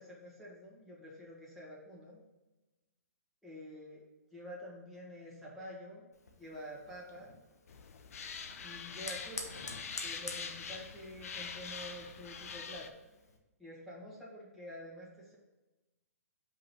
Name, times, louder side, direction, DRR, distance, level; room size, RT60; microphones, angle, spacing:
voice 1, 0.0-2.2 3.4-4.0 4.3-6.0 6.3-7.4 8.6-9.6 10.0-13.0 13.6-15.4, equal, ahead, -8 dB, 1.8 m, -48 dB
Fire, 6.1-13.4, left 3 dB, 85° left, 1.1 m, -49 dB
sound 1, 7.7-12.9, left 6 dB, 65° left, 0.7 m, -44 dB
5.6 x 3.8 x 5.5 m, 1.1 s
hypercardioid pair, 135°, 8 cm